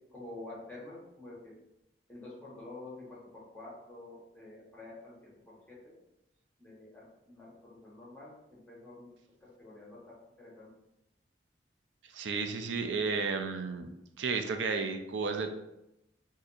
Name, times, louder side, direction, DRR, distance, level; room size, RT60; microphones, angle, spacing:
voice 1, 0.1-1.5 2.1-3.2 3.5-5.1 5.5-5.6 5.8-6.0 6.6-9.1 9.4-10.0 10.4-10.7, left 2 dB, 5° left, -6 dB, 0.9 m, -48 dB
voice 2, 12.1-13.9 14.2-15.5, right 4 dB, 80° right, 6 dB, 0.4 m, -32 dB
2.6 x 2.5 x 3.9 m, 0.88 s
head